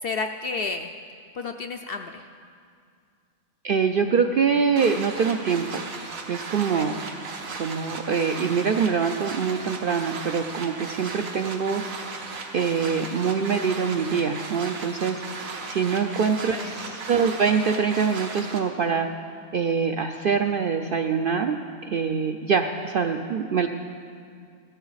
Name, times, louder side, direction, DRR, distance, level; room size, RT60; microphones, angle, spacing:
voice 1, 0.0-0.9 1.3-2.2 6.7-6.9 16.5-17.0, left 4 dB, 65° left, 6 dB, 0.6 m, -31 dB
voice 2, 3.6-5.8 6.3-7.0 7.6-11.8 12.5-15.2 15.7-19.1 19.5-21.6 21.8-23.7, right 6 dB, 65° right, 6 dB, 0.5 m, -24 dB
sound 1, 4.8-18.6, right 4 dB, 80° right, 1.6 m, -36 dB
16.5 x 13.5 x 4.0 m, 2.3 s
omnidirectional pair, 1.4 m